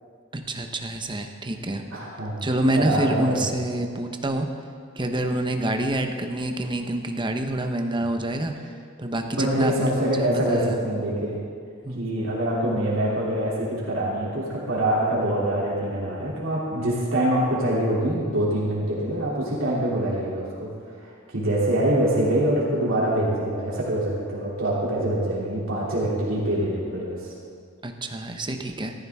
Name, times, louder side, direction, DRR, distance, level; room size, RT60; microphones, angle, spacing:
voice 1, 0.3-1.8 2.4-4.5 5.0-8.5 9.0-10.8 11.8-12.1 27.8-28.9, right 1 dB, 25° right, 4 dB, 0.9 m, -27 dB
voice 2, 1.9-3.5 7.9-8.1 9.4-11.4 11.9-20.7 21.0-27.3, right 1 dB, 75° right, -6 dB, 2.9 m, -25 dB
14.5 x 14.0 x 3.6 m, 2.2 s
head